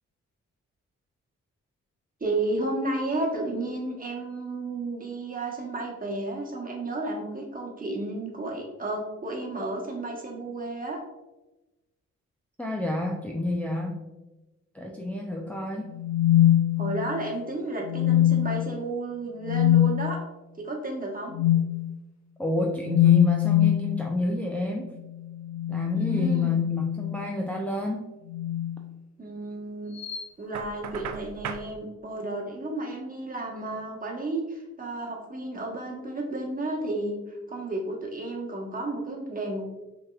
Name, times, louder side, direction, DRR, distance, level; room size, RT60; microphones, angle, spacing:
voice 1, 2.2-11.0 16.8-20.2 20.5-21.3 25.9-26.6 29.2-29.9 30.4-39.7, right 2 dB, 25° right, -1 dB, 1.3 m, -32 dB
voice 2, 12.6-14.0 14.7-15.9 22.4-24.9 25.7-28.0, left 1 dB, 5° left, 0 dB, 0.5 m, -29 dB
sound 1, 15.9-17.2 17.9-18.6 19.4-19.9 21.3-21.7 22.8-23.9 25.4-27.2 28.3-28.7 30.0-30.2, left 12 dB, 60° left, 0.6 m, -22 dB
Knock, 30.5-31.7, right 7 dB, 65° right, 0.5 m, -36 dB
5.5 x 2.9 x 2.4 m, 1.1 s
supercardioid pair, 50°, 31 cm